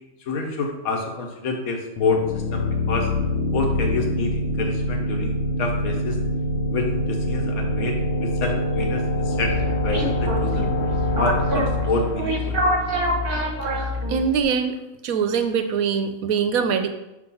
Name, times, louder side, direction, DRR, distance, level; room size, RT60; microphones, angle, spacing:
voice 1, 0.3-3.1 3.5-6.2 6.7-8.0 8.2-10.7 11.2-12.6, left 3 dB, 80° left, 2 dB, 1.6 m, -28 dB
sound 1, 2.0-13.5, left 1 dB, 55° left, 0.9 m, -25 dB
sound 2, 9.3-14.4, left 1 dB, 40° right, 1.2 m, -26 dB
voice 2, 13.7-14.8 15.0-16.9, right 6 dB, 75° right, 8 dB, 1.1 m, -23 dB
5.2 x 5.0 x 5.6 m, 0.94 s
omnidirectional pair, 1.5 m